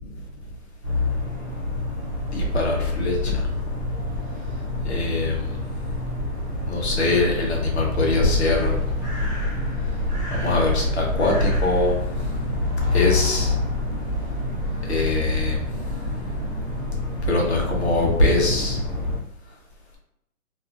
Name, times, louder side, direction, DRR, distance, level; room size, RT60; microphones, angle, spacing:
sound 1, 0.8-19.2, left 2 dB, 25° right, 0.9 m, -28 dB
voice 1, 2.3-3.4 4.8-5.6 6.7-8.8 10.3-12.0 12.9-13.6 14.9-15.6 17.2-18.8, left 2 dB, 50° left, -1 dB, 0.8 m, -22 dB
Mechanical fan, 8.2-13.5, left 2 dB, 60° right, 0.9 m, -29 dB
2.6 x 2.5 x 2.4 m, 0.80 s
hypercardioid pair, 165°, 43 cm